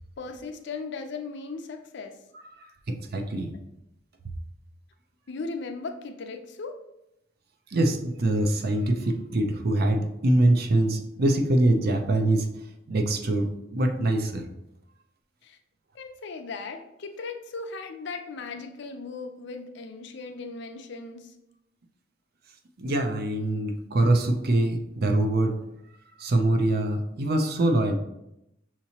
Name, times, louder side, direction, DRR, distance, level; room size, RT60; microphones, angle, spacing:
voice 1, 0.2-2.2 5.3-6.8 15.4-15.6 15.9-21.3, left 4 dB, 60° left, 6 dB, 0.5 m, -37 dB
voice 2, 2.5-3.5 7.7-12.5 12.9-14.5 22.8-25.6 26.2-28.0, right 1 dB, 50° right, 5 dB, 0.5 m, -24 dB
5.8 x 2.9 x 2.8 m, 0.84 s
head